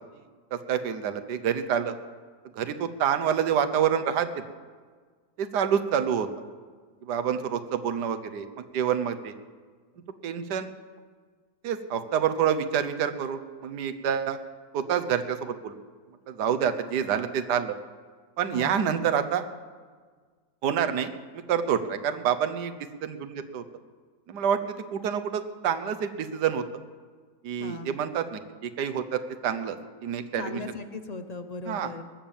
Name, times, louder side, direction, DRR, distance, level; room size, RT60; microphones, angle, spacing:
voice 1, 0.5-1.9 2.5-4.3 5.4-6.3 7.1-8.5 8.7-9.3 10.2-10.7 11.6-14.4 14.7-15.8 16.3-17.7 18.4-19.4 20.6-22.7 23.0-23.6 24.3-26.6 27.4-29.8 30.0-30.6 31.7-31.9, right 8 dB, 85° right, 9 dB, 1.5 m, -27 dB
voice 2, 18.4-18.9 27.6-28.0 30.4-32.0, left 3 dB, 45° left, 8 dB, 0.5 m, -38 dB
20.5 x 7.3 x 7.1 m, 1.6 s
omnidirectional pair, 1.7 m